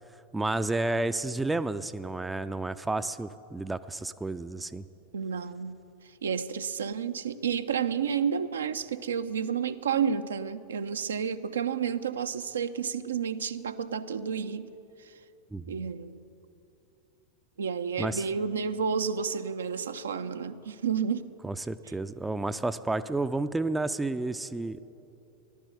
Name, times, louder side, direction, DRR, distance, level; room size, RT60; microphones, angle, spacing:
voice 1, 0.3-4.8 15.5-15.9 18.0-18.2 21.4-24.8, right 2 dB, 10° right, 12 dB, 0.4 m, -31 dB
voice 2, 5.1-14.7 15.0-15.1 15.7-16.2 17.6-21.3, right 7 dB, 70° right, 10 dB, 0.5 m, -31 dB
15.5 x 11.5 x 7.9 m, 2.8 s
figure-of-eight pair, 90°, 0 cm